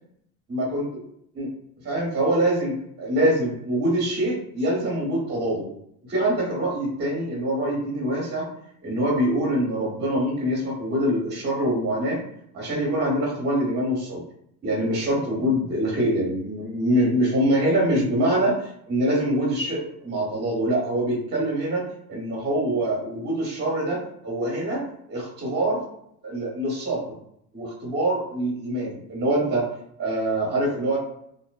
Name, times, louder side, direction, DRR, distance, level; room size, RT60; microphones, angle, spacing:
voice 1, 0.5-1.0 1.3-1.5 1.8-5.7 6.1-8.4 8.8-12.2 12.5-14.2 14.6-21.8 22.1-24.8 25.1-25.9 26.2-27.1 27.5-29.7 30.0-31.0, right 1 dB, 30° right, -3 dB, 1.0 m, -24 dB
2.6 x 2.0 x 2.2 m, 0.71 s
cardioid pair, 125°, 36 cm